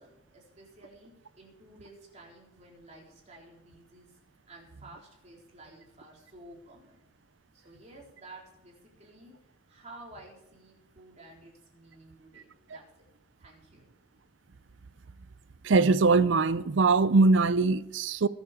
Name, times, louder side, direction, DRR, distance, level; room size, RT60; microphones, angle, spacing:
voice 1, 0.0-4.2 4.5-7.0 7.5-13.1 13.4-13.8, right 2 dB, 35° right, 3.9 m, -52 dB
voice 2, 15.6-18.3, right 3 dB, 65° right, 0.5 m, -22 dB
21.0 x 7.4 x 4.9 m
head